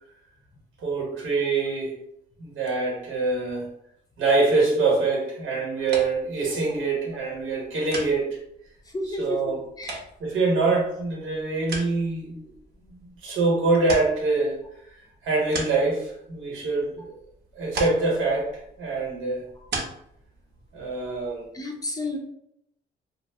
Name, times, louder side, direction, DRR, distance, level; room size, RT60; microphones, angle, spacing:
voice 1, 0.8-2.0 2.4-3.7 4.2-8.4 9.0-9.6 10.2-12.5 12.8-12.9 13.2-14.6 14.9-17.1 17.5-19.4 20.7-21.5, right 3 dB, 85° right, -2 dB, 1.1 m, -25 dB
sound 1, 5.8-21.5, right 2 dB, 60° right, 0.8 m, -40 dB
voice 2, 8.9-10.0 21.5-22.2, left 2 dB, 20° left, 2 dB, 0.5 m, -31 dB
2.4 x 2.0 x 3.4 m, 0.73 s
cardioid pair, 90°, 20 cm